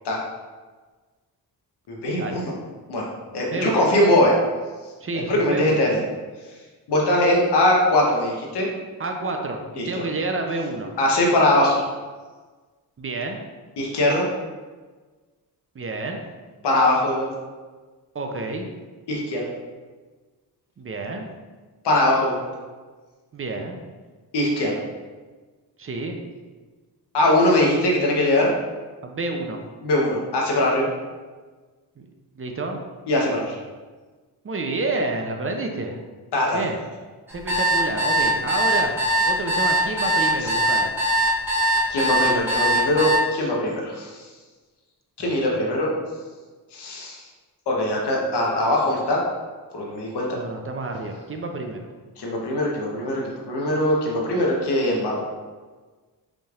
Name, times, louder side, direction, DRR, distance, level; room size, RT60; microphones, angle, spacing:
voice 1, 1.9-2.5 2.9-3.1 3.3-4.3 5.3-6.0 6.9-8.7 9.8-10.0 11.0-11.8 13.8-14.3 16.6-17.3 19.1-19.5 21.8-22.4 24.3-24.8 27.1-28.5 29.8-30.9 33.1-33.6 36.3-36.6 40.4-40.5 41.9-44.2 45.2-45.9 46.7-47.2 47.7-49.2 49.7-50.3 52.2-55.2, left 1 dB, 80° left, -2 dB, 1.0 m, -21 dB
voice 2, 5.0-5.8 9.0-10.9 13.0-13.4 15.8-16.2 18.1-18.7 20.8-21.3 23.3-23.8 25.8-26.2 29.0-29.6 32.4-32.8 34.4-36.0 36.5-36.8 37.3-38.9 39.3-41.1 45.2-45.3 50.3-51.9, right 2 dB, 35° right, 3 dB, 0.5 m, -29 dB
sound 1, 37.3-43.2, right 1 dB, 5° right, 1.3 m, -21 dB
5.1 x 3.3 x 2.4 m, 1.4 s
cardioid pair, 80°, 40 cm